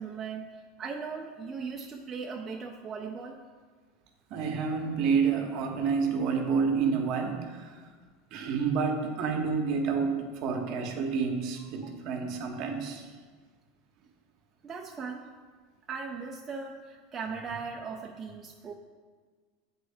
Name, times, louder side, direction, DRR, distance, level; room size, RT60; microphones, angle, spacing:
voice 1, 0.0-3.4 11.8-11.9 14.6-15.2 15.9-18.7, right 5 dB, 25° right, -1 dB, 0.4 m, -38 dB
voice 2, 4.3-7.9 8.3-13.1, right 5 dB, 55° right, 4 dB, 0.8 m, -29 dB
7.4 x 4.4 x 3.4 m, 1.5 s
supercardioid pair, 130°, 0 cm